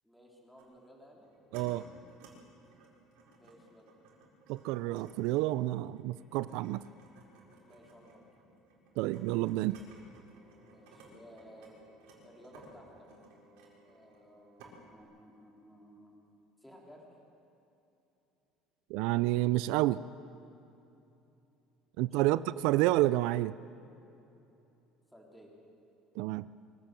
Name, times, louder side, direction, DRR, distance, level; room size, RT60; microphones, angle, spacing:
voice 1, 0.0-1.3 3.4-3.9 7.6-8.2 10.6-11.7 12.2-13.1 13.8-16.1 16.6-17.1 22.0-22.4 25.1-25.5, equal, 5° left, -2 dB, 3.3 m, -56 dB
sound 1, 0.6-0.7 1.2-1.6 2.0-2.3 2.6-11.1 11.4-14.3 14.6-14.7, right 4 dB, 90° right, 4.6 m, -58 dB
voice 2, 1.5-1.8 4.5-6.8 9.0-9.8 18.9-20.0 22.0-23.5 26.2-26.5, right 17 dB, 70° right, 16 dB, 0.4 m, -29 dB
sound 2, 10.0-15.0, equal, 40° left, 4.4 m, -64 dB
24.0 x 16.0 x 7.5 m, 2.9 s
cardioid pair, 165°, 0 cm